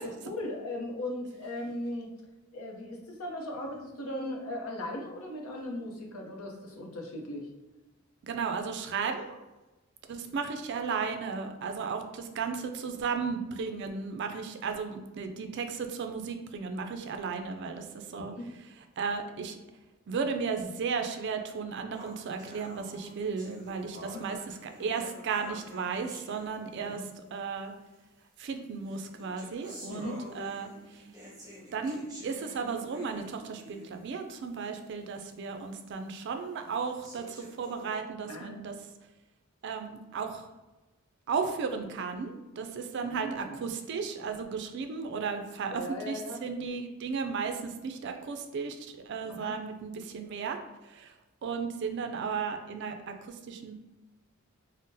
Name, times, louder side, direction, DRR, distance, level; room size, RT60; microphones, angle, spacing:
voice 1, 0.2-2.1 2.5-7.5 18.1-18.5 24.1-24.2 26.8-27.0 29.9-30.2 38.3-38.6 43.0-43.7 45.7-46.4 49.2-49.5, left 1 dB, 90° left, 1 dB, 0.6 m, -38 dB
voice 2, 8.2-9.4 10.1-18.3 19.0-19.6 20.1-27.7 28.4-31.0 31.7-38.7 39.6-40.5 41.3-50.6 50.9-51.1 51.4-53.7, right 5 dB, 55° right, 6 dB, 0.3 m, -35 dB
sound 1, 21.9-27.1 27.9-28.0 28.8-34.1 34.5-34.6 35.1-35.2 35.9-36.0 36.8-37.9, equal, 20° right, 0.6 m, -48 dB
3.7 x 2.1 x 2.6 m, 1.1 s
head